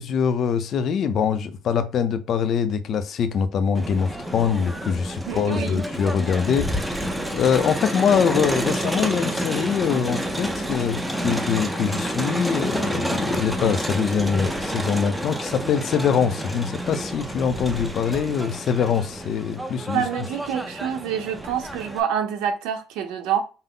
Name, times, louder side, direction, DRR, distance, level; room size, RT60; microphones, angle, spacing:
voice 1, 0.0-20.0, left 7 dB, 45° left, 0.5 m, -23 dB
Crowd, 3.7-22.0, equal, 5° right, 0.5 m, -29 dB
voice 2, 5.3-5.8 19.9-23.4, right 8 dB, 85° right, 0.8 m, -27 dB
5.5 x 2.0 x 3.8 m
cardioid pair, 155°, 0 cm